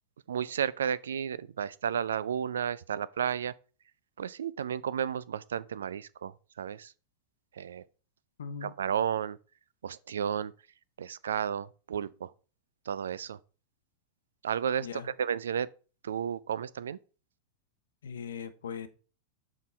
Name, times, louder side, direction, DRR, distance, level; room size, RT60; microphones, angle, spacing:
voice 1, 0.3-3.5 4.2-6.9 7.6-7.8 8.6-9.4 9.8-10.5 11.0-12.3 12.9-13.4 14.4-15.7 16.0-17.0, right 8 dB, 65° right, 0.3 m, -32 dB
voice 2, 8.4-8.7 14.8-15.1 18.0-18.9, left 7 dB, 65° left, 0.7 m, -39 dB
7.3 x 3.8 x 4.3 m
figure-of-eight pair, 90°, 0 cm